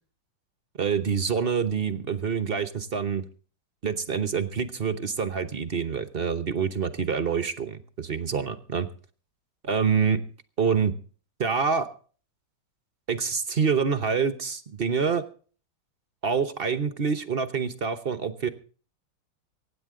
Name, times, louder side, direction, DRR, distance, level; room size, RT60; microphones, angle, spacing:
voice 1, 0.8-3.2 3.8-8.9 9.6-10.2 10.6-10.9 11.4-11.9 13.1-15.2 16.2-18.5, right 6 dB, 55° right, 10 dB, 0.6 m, -26 dB
24.0 x 10.0 x 3.7 m, 0.42 s
omnidirectional pair, 2.3 m